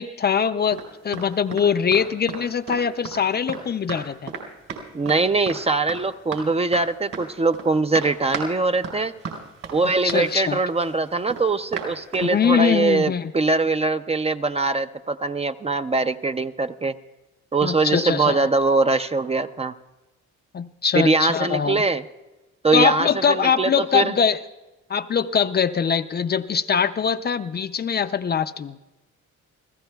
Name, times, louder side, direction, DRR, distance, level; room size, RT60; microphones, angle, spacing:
voice 1, 0.0-4.3 10.0-10.6 12.2-13.3 17.6-18.4 20.5-21.8 22.7-24.4 24.9-28.8, left 7 dB, 35° left, 10 dB, 0.5 m, -22 dB
sound 1, 0.7-1.3 1.5-1.7 1.9-2.4 2.7-3.6 3.9-4.0 4.3-4.4 4.7-5.2 5.5-5.6 5.9-6.4 6.7-6.8 7.1-7.7 7.9-8.5 8.8-12.3, right 5 dB, 65° right, 4.1 m, -34 dB
voice 2, 4.9-9.1 9.7-16.9 17.5-19.7 20.9-22.0 22.6-24.1, right 3 dB, 20° right, 9 dB, 0.5 m, -22 dB
29.5 x 15.5 x 2.3 m, 1.1 s
cardioid pair, 90°, 30 cm